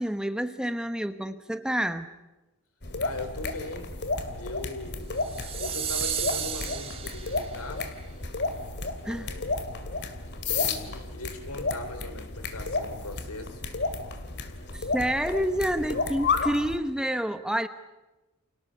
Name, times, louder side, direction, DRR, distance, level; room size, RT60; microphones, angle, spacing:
voice 1, 0.0-2.1 9.0-9.3 14.7-17.7, equal, 5° right, 9 dB, 1.0 m, -28 dB
sound 1, 2.8-16.8, left 3 dB, 50° left, 2.5 m, -32 dB
voice 2, 3.0-3.9 4.4-5.1 5.6-8.0 9.0-9.5 10.4-13.6, left 2 dB, 85° left, 7 dB, 4.2 m, -40 dB
sound 2, 5.2-7.7, right 8 dB, 25° right, 2.0 m, -33 dB
30.0 x 27.5 x 6.9 m, 1.1 s
head